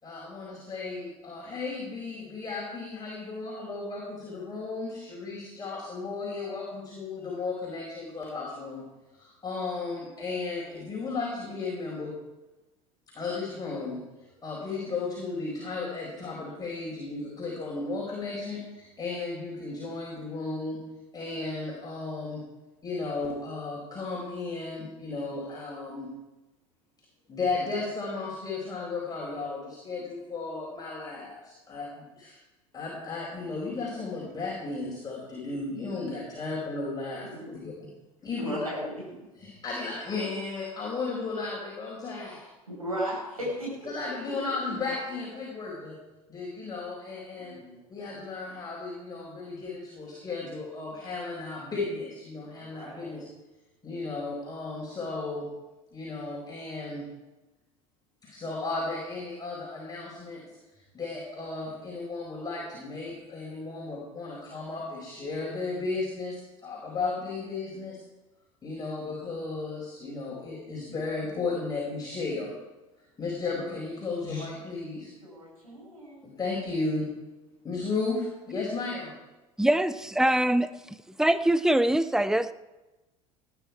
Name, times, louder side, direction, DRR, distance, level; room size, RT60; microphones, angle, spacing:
voice 1, 0.0-8.8 9.1-12.2 13.1-14.0 14.4-20.8 21.1-22.4 22.8-26.1 27.3-32.4 32.7-37.7 38.2-38.7 39.4-42.5 43.8-46.0 46.3-47.6 47.9-53.3 53.8-55.5 55.9-57.1 58.2-60.4 60.9-68.0 68.6-72.5 73.2-75.1 76.2-77.1 77.6-79.1, left 3 dB, 20° left, -5 dB, 4.9 m, -34 dB
voice 2, 38.4-39.1 42.7-43.7 47.3-47.8 52.6-53.2 75.2-76.3, equal, 85° right, -4 dB, 5.6 m, -36 dB
voice 3, 79.6-80.7 81.2-82.5, right 1 dB, 5° right, 13 dB, 0.7 m, -23 dB
19.5 x 10.5 x 4.7 m, 1.1 s
figure-of-eight pair, 75°, 18 cm